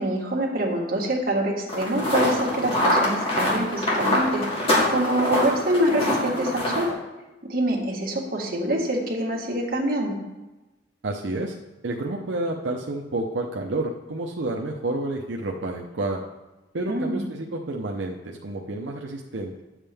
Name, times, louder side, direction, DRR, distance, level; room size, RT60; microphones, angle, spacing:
voice 1, 0.0-4.4 4.9-6.9 7.5-10.2 16.9-17.2, right 1 dB, 55° right, -2 dB, 1.7 m, -25 dB
sound 1, 1.7-6.9, left 1 dB, 35° left, 2.2 m, -24 dB
voice 2, 11.0-11.5 11.8-16.2 16.7-19.6, right 2 dB, 85° right, 0 dB, 0.7 m, -30 dB
10.0 x 7.4 x 3.5 m, 1.1 s
head